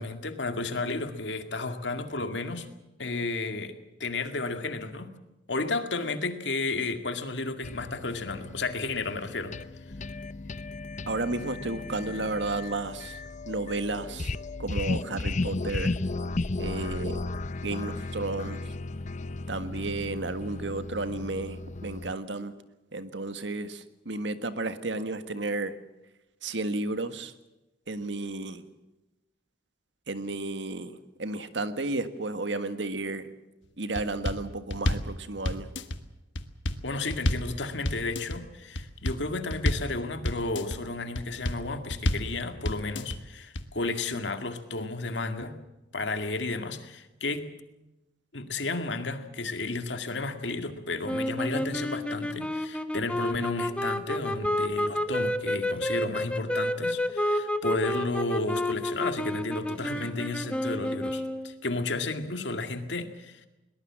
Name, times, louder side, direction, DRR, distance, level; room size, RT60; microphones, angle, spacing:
voice 1, 0.0-2.7 3.0-5.1 5.5-9.6 36.8-45.6 45.9-47.5 48.3-63.5, left 3 dB, 70° left, 8 dB, 2.2 m, -32 dB
sound 1, 7.6-22.1, left 2 dB, 40° left, 0.7 m, -35 dB
voice 2, 11.1-13.2 13.4-14.3 14.6-16.0 16.6-17.2 17.6-18.6 19.5-22.5 22.9-25.8 26.4-27.3 27.9-28.6 30.1-33.3 33.8-35.7, right 2 dB, 70° right, 11 dB, 1.7 m, -32 dB
sound 2, 33.9-34.4 34.7-35.1 35.4-36.0 36.3-36.8 37.1-37.5 37.8-38.4 38.7-39.2 39.5-39.9 40.2-40.8 41.1-41.6 41.9-42.3 42.6-43.2 43.5-43.6, left 1 dB, 90° left, 1.5 m, -29 dB
sound 3, 51.1-61.5, left 1 dB, 5° left, 1.3 m, -30 dB
22.0 x 20.0 x 7.5 m, 1.0 s
head